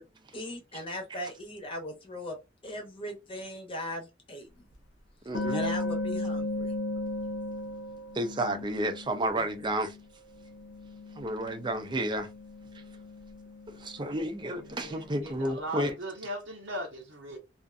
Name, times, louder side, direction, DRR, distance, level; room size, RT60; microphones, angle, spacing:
voice 1, 0.3-2.4 2.6-4.5 5.5-6.7, left 1 dB, 30° left, 0.8 m, -38 dB
sound 1, 4.7-4.8 5.3-10.0 10.3-15.2, left 2 dB, 75° left, 0.7 m, -37 dB
voice 2, 5.3-5.6 8.1-10.0 11.2-12.3 13.8-15.9, right 1 dB, 25° right, 0.5 m, -31 dB
voice 3, 14.6-17.4, equal, 80° right, 0.7 m, -38 dB
2.5 x 2.5 x 2.2 m
head